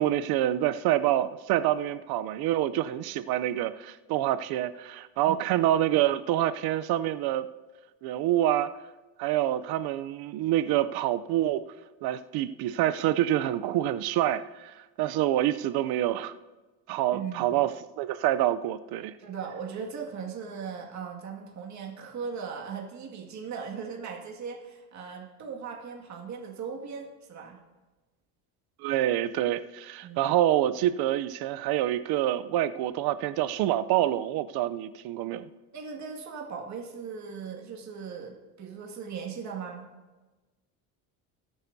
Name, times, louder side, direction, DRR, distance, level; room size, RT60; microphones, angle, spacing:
voice 1, 0.0-7.5 8.0-8.7 9.2-11.6 12.0-16.3 16.9-17.7 18.0-19.1 28.8-35.5, right 13 dB, 65° right, 0.6 m, -27 dB
voice 2, 17.1-17.6 19.2-27.6 30.0-30.3 35.7-39.9, right 6 dB, 45° right, 2.1 m, -38 dB
20.5 x 9.0 x 2.7 m
cardioid pair, 105°, 39 cm